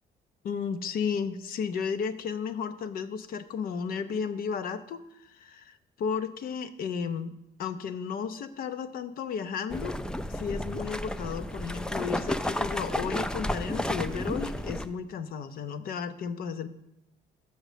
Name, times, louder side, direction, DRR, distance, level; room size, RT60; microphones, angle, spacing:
voice 1, 0.4-10.0 10.3-16.7, left 6 dB, 60° left, 11 dB, 0.6 m, -33 dB
sound 1, 9.7-14.9, left 1 dB, 5° left, 0.3 m, -32 dB
6.5 x 6.4 x 4.9 m, 0.83 s
cardioid pair, 110°, 17 cm